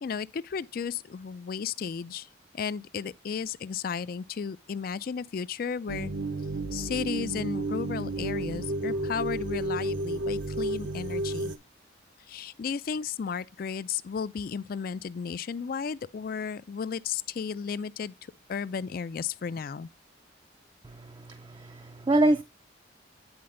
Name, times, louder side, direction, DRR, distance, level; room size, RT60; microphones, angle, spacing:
voice 1, 0.0-2.3 2.5-6.1 6.7-11.5 12.3-18.1 18.5-19.9, left 6 dB, 50° left, 0.3 m, -34 dB
sound 1, 5.9-11.6, right 2 dB, 70° right, 0.8 m, -32 dB
voice 2, 20.8-22.4, right 2 dB, 25° right, 0.4 m, -26 dB
9.6 x 4.2 x 3.7 m
head